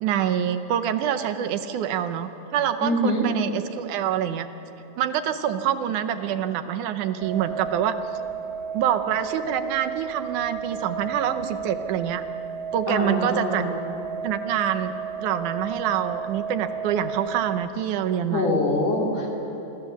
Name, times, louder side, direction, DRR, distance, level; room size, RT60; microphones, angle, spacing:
voice 1, 0.0-4.5 5.0-7.9 8.7-12.2 12.7-13.6 14.2-14.9 15.2-18.6, right 9 dB, 85° right, 8 dB, 2.3 m, -26 dB
voice 2, 2.8-3.3 12.9-13.8 18.3-19.4, left 1 dB, 60° left, -2 dB, 4.1 m, -24 dB
sound 1, 7.2-17.7, right 6 dB, 60° right, 2.2 m, -33 dB
27.5 x 13.5 x 7.2 m, 3.0 s
omnidirectional pair, 3.5 m